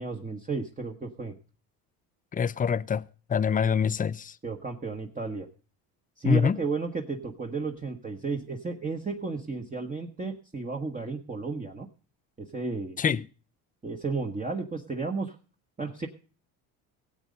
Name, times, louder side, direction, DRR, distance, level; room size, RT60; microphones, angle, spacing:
voice 1, 0.0-1.3 3.5-3.7 4.4-5.5 6.2-11.9 12.4-13.0 13.8-15.4 15.8-16.1, right 4 dB, 20° right, 1.4 m, -33 dB
voice 2, 2.3-3.0 3.3-4.4 6.2-6.6 13.0-13.3, left 7 dB, 20° left, 0.5 m, -25 dB
17.0 x 8.2 x 5.2 m
supercardioid pair, 90°, 41 cm